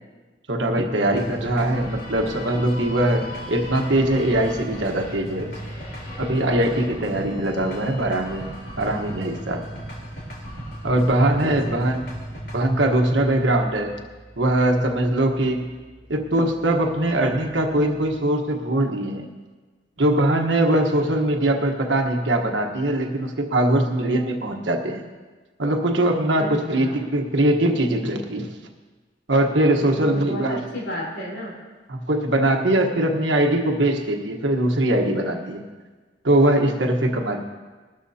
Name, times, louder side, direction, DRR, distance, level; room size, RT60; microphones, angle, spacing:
voice 1, 0.5-5.5 6.2-8.5 8.8-9.7 10.8-12.1 12.5-14.0 14.4-15.7 16.1-19.3 20.0-25.0 25.6-28.5 29.3-30.6 31.9-35.6 36.2-37.5, right 1 dB, 85° right, 2 dB, 1.2 m, -21 dB
sound 1, 1.1-18.2, equal, 55° left, 3.6 m, -37 dB
voice 2, 11.4-12.0 26.4-27.0 29.8-31.6, equal, 85° left, -4 dB, 4.2 m, -33 dB
20.0 x 13.0 x 2.8 m, 1.3 s
head